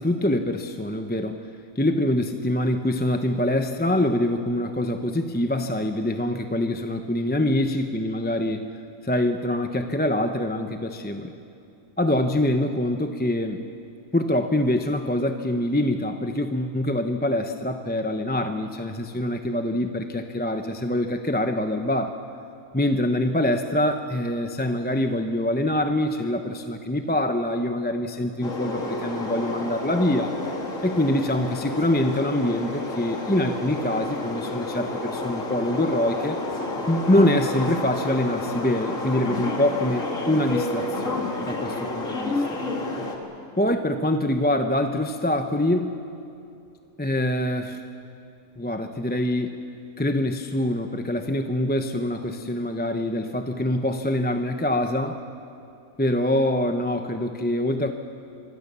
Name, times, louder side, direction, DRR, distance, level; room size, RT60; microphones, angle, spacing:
voice 1, 0.0-1.4 1.8-8.7 9.0-11.3 12.0-13.6 14.1-22.2 22.7-30.3 30.8-36.4 36.9-42.4 43.6-46.0 47.0-47.8 48.6-49.6 50.0-55.2 56.0-57.9, left 1 dB, 10° left, 6 dB, 0.7 m, -24 dB
sound 1, 28.4-43.2, left 2 dB, 60° left, 2.9 m, -30 dB
26.5 x 24.0 x 6.9 m, 2.6 s
omnidirectional pair, 1.6 m